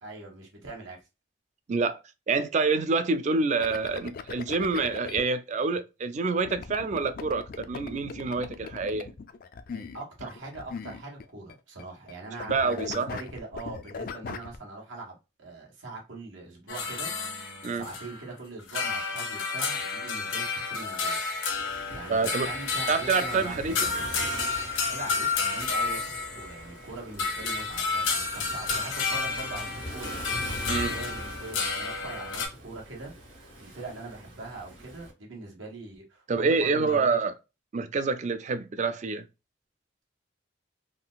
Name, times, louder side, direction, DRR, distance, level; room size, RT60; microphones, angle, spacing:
voice 1, 0.0-1.0 9.7-17.1 17.7-21.2 21.9-23.9 24.9-26.0 26.3-30.1 30.7-33.1 33.6-37.2, right 2 dB, 85° right, 1.4 m, -42 dB
voice 2, 1.7-2.0 2.3-9.1 12.5-13.1 17.6-17.9 22.1-22.5 22.9-23.9 30.7-30.9 36.3-37.3 37.7-39.2, right 4 dB, 40° right, 0.3 m, -27 dB
sound 1, 3.6-5.2 6.4-11.5 11.8-12.1 12.4-14.6, left 5 dB, 50° left, 0.3 m, -39 dB
sound 2, 16.7-18.3 18.6-26.8 27.2-32.5, left 4 dB, 90° left, 1.0 m, -31 dB
Waves surf, 21.5-35.1, equal, 70° right, 1.5 m, -43 dB
3.7 x 2.4 x 2.2 m
head